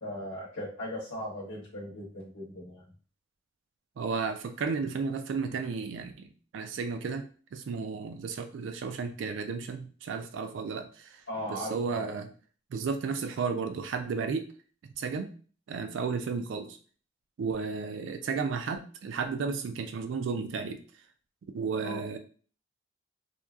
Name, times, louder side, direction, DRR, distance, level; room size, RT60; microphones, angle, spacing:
voice 1, 0.0-2.8 11.3-12.2 21.8-22.0, left 1 dB, 75° left, -4 dB, 0.8 m, -38 dB
voice 2, 4.0-7.3 7.5-11.2 11.5-12.3 12.7-14.5 15.0-15.3 15.7-16.8 17.4-20.8 21.5-22.2, right 5 dB, 80° right, 7 dB, 0.3 m, -33 dB
2.8 x 2.2 x 2.3 m, 0.40 s
head